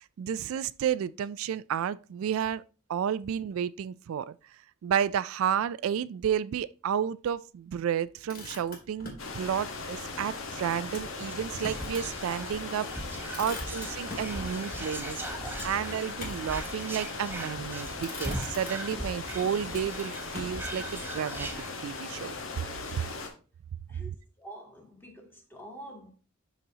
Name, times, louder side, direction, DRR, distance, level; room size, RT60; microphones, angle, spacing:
voice 1, 0.0-2.6 2.9-4.4 4.8-12.9 13.4-15.3 15.6-21.5 21.8-22.3 23.0-23.1 24.1-24.2, right 8 dB, 80° right, 0.3 m, -31 dB
Motor vehicle (road), 8.0-9.3 10.9-12.1 12.5-12.6 13.0-14.4 15.6-16.6 17.4-17.7 18.0-19.2 19.7-20.9, left 2 dB, 45° left, 2.1 m, -43 dB
sound 1, 9.2-23.3, left 3 dB, 70° left, 1.2 m, -39 dB
Whispering, 11.2-22.2 22.6-22.7 22.9-23.3, right 1 dB, 10° right, 0.9 m, -40 dB
voice 2, 23.9-26.1, right 1 dB, 10° left, 1.7 m, -47 dB
11.5 x 4.1 x 2.8 m
head